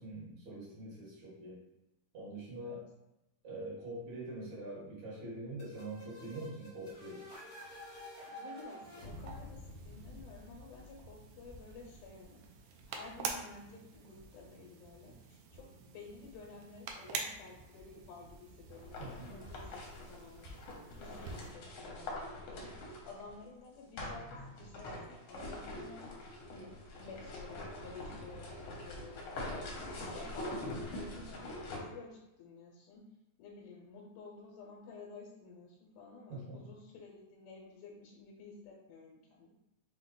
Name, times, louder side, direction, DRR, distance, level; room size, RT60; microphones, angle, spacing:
voice 1, 0.0-1.6 2.1-2.8 3.4-7.2 19.0-19.3 36.3-36.7, right 1 dB, 65° right, -6 dB, 2.6 m, -44 dB
sound 1, 5.6-11.2, left 1 dB, 45° left, 0.8 m, -50 dB
voice 2, 8.3-20.6 21.0-33.1 33.4-39.5, left 4 dB, 85° left, -2 dB, 2.1 m, -52 dB
sound 2, 8.8-21.5, right 5 dB, 80° right, 1.6 m, -47 dB
sound 3, 18.7-23.3 24.0-31.8, left 1 dB, 70° left, 1.4 m, -44 dB
5.5 x 2.1 x 3.8 m, 0.93 s
omnidirectional pair, 3.6 m